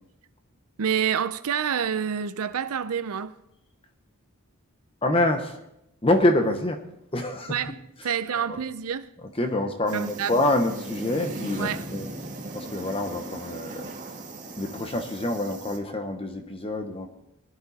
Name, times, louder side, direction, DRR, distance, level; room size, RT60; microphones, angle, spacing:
voice 1, 0.8-3.4 7.5-7.8 8.0-9.1 9.9-10.4 11.6-11.8, right 7 dB, 80° right, 0.5 m, -28 dB
voice 2, 5.0-5.6 6.0-6.8 7.1-7.6 8.5-8.6 9.4-12.1 12.5-13.9 14.6-17.1, left 1 dB, 25° left, 1.0 m, -26 dB
sound 1, 9.9-15.8, right 2 dB, 35° right, 1.9 m, -38 dB
20.0 x 11.0 x 4.2 m
head